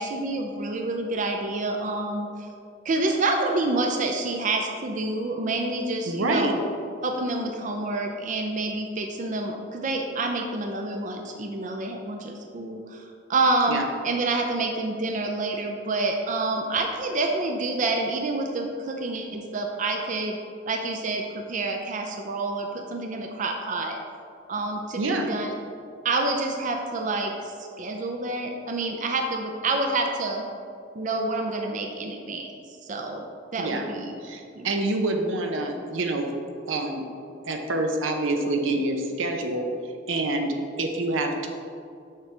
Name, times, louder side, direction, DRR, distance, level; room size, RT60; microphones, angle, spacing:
voice 1, 0.0-2.3 2.8-6.6 7.0-20.4 20.7-24.0 24.5-25.5 26.0-30.4 30.9-33.2 33.5-34.2 34.6-34.7, right 2 dB, 40° right, 3 dB, 0.5 m, -28 dB
voice 2, 6.0-6.5 13.7-13.8 25.0-25.3 33.6-33.9 34.2-36.3 36.7-37.0 37.5-39.7 40.1-40.5 40.8-41.5, right 2 dB, 90° right, 4 dB, 0.7 m, -26 dB
6.5 x 6.1 x 3.3 m, 2.4 s
head